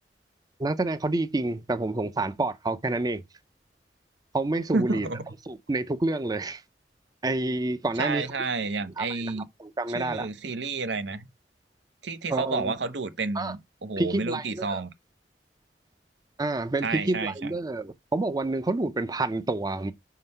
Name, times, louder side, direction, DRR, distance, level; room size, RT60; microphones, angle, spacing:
voice 1, 0.6-3.2 4.3-5.1 5.5-6.6 7.2-8.3 9.0-10.3 12.3-12.7 13.3-13.5 14.0-14.8 16.4-19.9, right 2 dB, 20° right, 0.5 m, -28 dB
voice 2, 4.7-5.3 8.0-9.5 9.9-11.3 12.0-14.9 16.8-17.5, right 3 dB, 90° right, 0.8 m, -30 dB
5.3 x 3.8 x 5.4 m
head